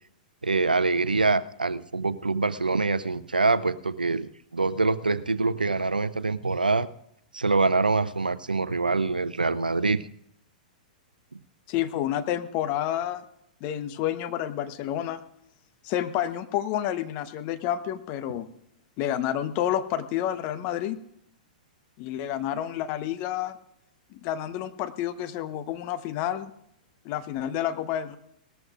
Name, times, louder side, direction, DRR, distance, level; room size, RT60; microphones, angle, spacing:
voice 1, 0.4-6.9 7.3-10.0, right 3 dB, 90° right, 15 dB, 0.6 m, -25 dB
voice 2, 11.7-13.2 13.6-15.2 15.8-18.5 19.0-21.0 22.0-23.6 24.1-26.5 27.0-28.2, left 11 dB, 40° left, 10 dB, 1.0 m, -29 dB
19.0 x 14.0 x 2.5 m, 0.75 s
figure-of-eight pair, 105°, 5 cm